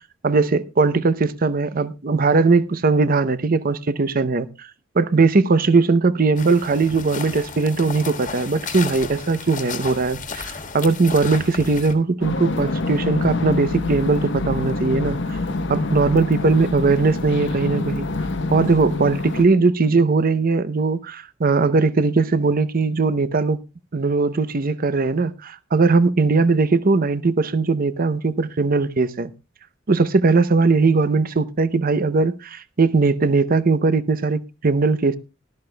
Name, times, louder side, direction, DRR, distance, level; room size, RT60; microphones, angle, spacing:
voice 1, 0.2-4.7 4.9-15.4 15.7-18.1 18.5-23.6 23.9-29.3 29.9-35.2, right 3 dB, 45° right, 0.7 m, -19 dB
sound 1, 6.4-11.9, left 5 dB, 40° left, 1.6 m, -33 dB
sound 2, 12.2-19.5, left 2 dB, 65° left, 1.0 m, -26 dB
18.5 x 12.5 x 2.2 m
head